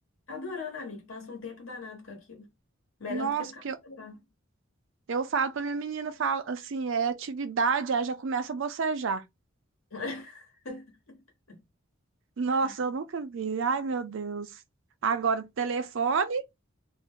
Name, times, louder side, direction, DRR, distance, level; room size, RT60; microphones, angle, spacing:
voice 1, 0.3-2.5 3.0-4.2 9.9-11.2 11.5-11.6 12.6-12.7, left 4 dB, 80° left, 1.2 m, -40 dB
voice 2, 3.1-3.8 5.1-9.2 12.4-14.5 15.0-16.4, right 5 dB, 65° right, 0.5 m, -29 dB
2.5 x 2.1 x 3.6 m
head